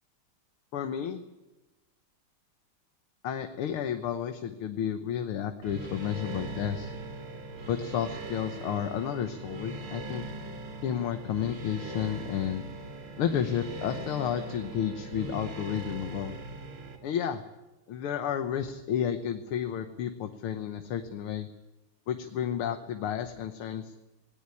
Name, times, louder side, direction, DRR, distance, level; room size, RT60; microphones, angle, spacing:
voice 1, 0.7-1.2 3.2-6.9 7.7-10.2 10.8-12.6 13.2-16.4 17.0-17.4 17.9-21.5 22.1-23.9, left 9 dB, 85° left, 7 dB, 1.9 m, -31 dB
sound 1, 5.6-17.0, right 2 dB, 80° right, 3.3 m, -40 dB
18.5 x 18.5 x 9.7 m, 1.1 s
omnidirectional pair, 2.3 m